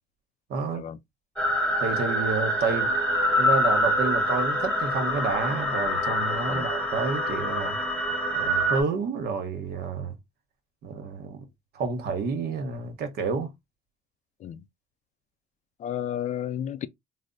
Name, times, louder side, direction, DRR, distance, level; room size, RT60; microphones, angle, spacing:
voice 1, 0.5-0.8 1.8-2.9 3.3-7.8 8.3-10.2 10.8-11.4 11.7-13.5, right 4 dB, 65° right, 1.0 m, -29 dB
sound 1, 1.4-8.8, equal, 5° left, 1.0 m, -25 dB
voice 2, 15.8-16.9, left 10 dB, 45° left, 0.4 m, -32 dB
3.3 x 2.0 x 3.8 m
cardioid pair, 110°, 17 cm